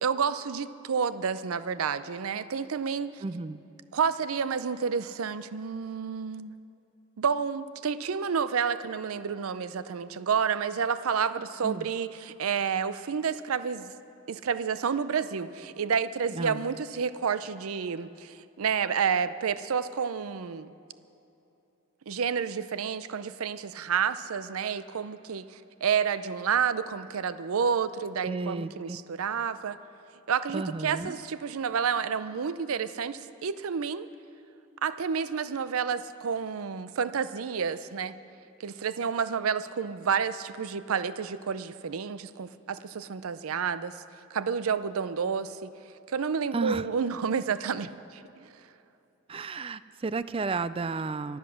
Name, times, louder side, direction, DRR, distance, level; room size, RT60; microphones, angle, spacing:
voice 1, 0.0-3.2 3.9-6.5 7.2-13.9 14.3-20.7 22.1-29.8 30.3-34.1 34.8-38.1 38.6-43.9 44.3-45.7 46.1-48.5, right 6 dB, 85° right, 14 dB, 0.5 m, -30 dB
voice 2, 3.2-3.6 11.6-11.9 16.3-16.7 28.2-29.0 30.5-31.2 46.5-46.9 49.3-51.4, right 3 dB, 25° right, 15 dB, 0.3 m, -32 dB
24.0 x 8.1 x 6.4 m, 2.8 s
head